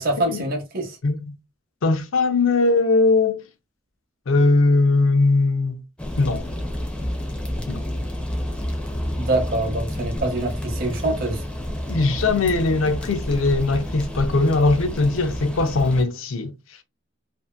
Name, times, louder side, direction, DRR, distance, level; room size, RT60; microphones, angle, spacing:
voice 1, 0.0-1.0 9.2-11.4, right 2 dB, 45° right, 0.8 m, -25 dB
voice 2, 1.0-1.4 1.8-3.4 4.3-5.8 6.2-6.4 7.7-7.8 11.9-16.5, left 3 dB, 75° left, 0.5 m, -20 dB
sound 1, 6.0-16.0, left 1 dB, 5° left, 0.4 m, -30 dB
2.7 x 2.4 x 2.3 m
head